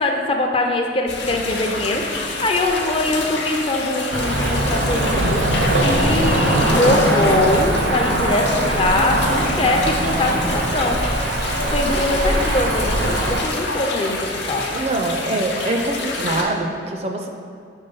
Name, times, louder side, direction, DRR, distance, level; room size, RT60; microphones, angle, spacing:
voice 1, 0.0-14.7, left 2 dB, 30° left, 2 dB, 0.5 m, -22 dB
sound 1, 1.1-16.4, left 3 dB, 70° left, 0.7 m, -27 dB
Cricket / Motor vehicle (road), 4.1-13.4, right 1 dB, 80° right, 0.7 m, -21 dB
voice 2, 14.7-17.3, right 2 dB, 35° right, 3 dB, 0.4 m, -24 dB
5.4 x 3.8 x 5.3 m, 2.2 s
head